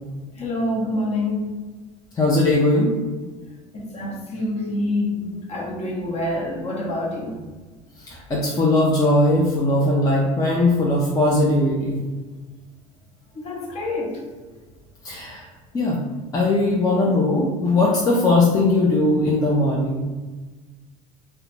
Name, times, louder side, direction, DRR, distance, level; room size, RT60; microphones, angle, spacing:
voice 1, 0.3-1.6 3.8-7.4 13.3-14.2, left 1 dB, 40° left, -2 dB, 0.8 m, -26 dB
voice 2, 2.2-2.9 8.1-12.0 15.0-15.4 15.7-16.0 16.3-20.0, left 2 dB, 20° left, -4 dB, 0.5 m, -19 dB
2.3 x 2.1 x 3.1 m, 1.3 s
hypercardioid pair, 80°, 18 cm